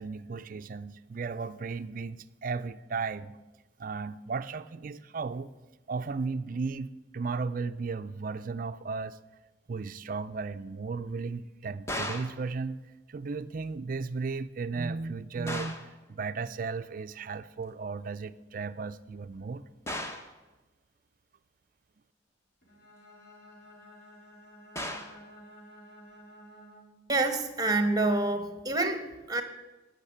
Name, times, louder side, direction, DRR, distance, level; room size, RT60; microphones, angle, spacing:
voice 1, 0.0-3.4 3.8-5.5 5.9-9.2 9.7-12.8 13.1-19.6, right 4 dB, 45° right, 12 dB, 0.4 m, -35 dB
sound 1, 11.9-12.4 15.5-15.9 19.9-20.3 24.8-25.2, left 1 dB, 15° left, 1.0 m, -36 dB
Bowed string instrument, 22.6-27.1, equal, 55° left, 4.0 m, -52 dB
voice 2, 27.1-29.4, right 2 dB, 20° right, 7 dB, 1.2 m, -27 dB
13.5 x 6.4 x 8.6 m, 1.1 s
head